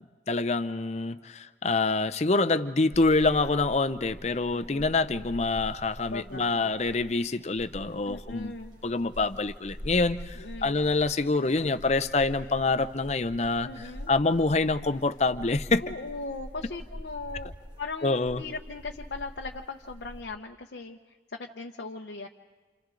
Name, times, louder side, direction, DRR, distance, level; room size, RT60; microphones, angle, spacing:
voice 1, 0.0-8.5 8.8-13.7 14.1-15.8 18.0-18.4, left 3 dB, 40° left, 10 dB, 0.7 m, -26 dB
sound 1, 2.9-20.2, equal, 25° right, 1.8 m, -44 dB
voice 2, 4.5-5.0 6.1-6.7 8.1-8.8 10.3-10.8 13.6-14.1 15.8-17.5 17.8-22.3, left 3 dB, 75° left, 1 dB, 0.8 m, -39 dB
29.0 x 28.5 x 3.9 m, 1.4 s
head